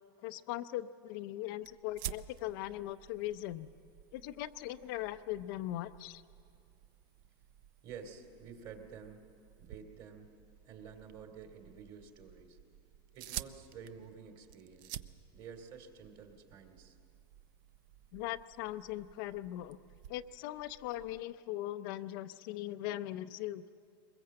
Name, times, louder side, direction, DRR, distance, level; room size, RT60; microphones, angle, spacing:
voice 1, 0.2-3.7 4.1-6.2 18.1-19.8 20.1-23.6, left 14 dB, 55° left, 10 dB, 0.6 m, -40 dB
sound 1, 1.6-21.3, right 12 dB, 55° right, 0.6 m, -51 dB
voice 2, 7.8-9.2 9.6-10.3 10.6-12.6 13.1-15.0 15.3-17.0, right 6 dB, 40° right, 5 dB, 2.7 m, -50 dB
23.0 x 21.5 x 7.6 m, 2.4 s
supercardioid pair, 145°, 13 cm